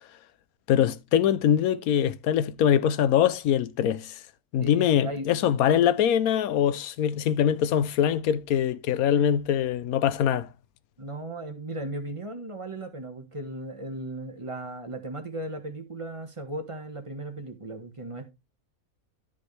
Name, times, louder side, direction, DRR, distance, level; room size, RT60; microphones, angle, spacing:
voice 1, 0.7-4.2 4.5-10.5, left 9 dB, 75° left, 1.1 m, -23 dB
voice 2, 4.6-5.3 11.0-18.3, right 1 dB, 20° right, 1.4 m, -36 dB
13.0 x 5.2 x 3.3 m
omnidirectional pair, 1.6 m